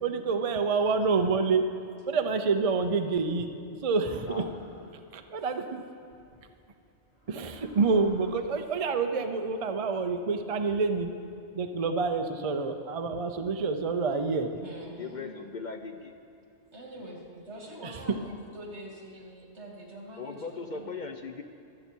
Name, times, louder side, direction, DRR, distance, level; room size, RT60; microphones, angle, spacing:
voice 1, 0.0-1.7 2.1-3.5 3.8-4.4 5.1-5.8 7.3-11.1 11.5-14.5 17.8-17.9, right 4 dB, 40° right, 6 dB, 0.6 m, -27 dB
sound 1, 4.1-5.1 6.1-6.4 7.1-8.7, equal, 70° left, 3.0 m, -53 dB
voice 2, 4.3-4.6 15.0-16.1 17.0-17.2 20.2-21.4, left 4 dB, 50° left, 6 dB, 0.7 m, -39 dB
voice 3, 14.6-15.3 16.7-21.0, right 1 dB, 80° right, -1 dB, 2.7 m, -44 dB
24.0 x 8.3 x 4.5 m, 2.5 s
omnidirectional pair, 1.1 m